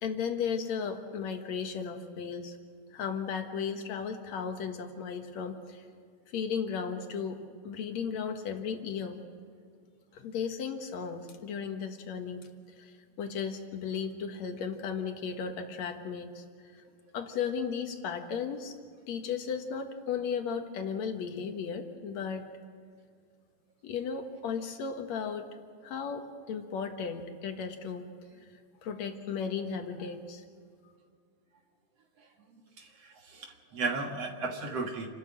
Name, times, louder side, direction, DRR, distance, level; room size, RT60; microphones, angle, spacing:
voice 1, 0.0-2.6 2.9-5.9 6.3-7.4 7.6-9.2 10.1-12.5 12.8-16.4 16.7-16.8 17.1-18.8 19.1-22.5 23.8-25.5 25.8-28.1 28.4-28.5 28.8-30.4 30.8-30.9, left 6 dB, 65° left, 5 dB, 2.7 m, -35 dB
voice 2, 32.8-35.1, right 3 dB, 60° right, 3 dB, 2.6 m, -35 dB
29.0 x 13.0 x 7.8 m, 2.2 s
omnidirectional pair, 3.4 m